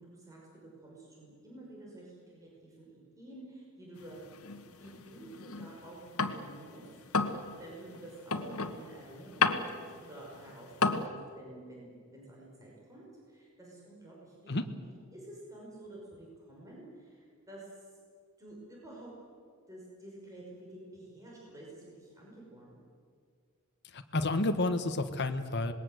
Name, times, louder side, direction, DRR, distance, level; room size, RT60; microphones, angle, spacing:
voice 1, 0.0-4.2 4.8-14.6 14.9-17.8 18.4-19.1 19.7-22.8, right 1 dB, 15° right, -4 dB, 5.7 m, -50 dB
sound 1, 4.0-6.7 7.0-11.0, left 4 dB, 80° left, 1.5 m, -32 dB
voice 2, 23.9-25.7, left 2 dB, 50° left, 6 dB, 1.2 m, -30 dB
26.5 x 20.5 x 7.9 m, 2.1 s
head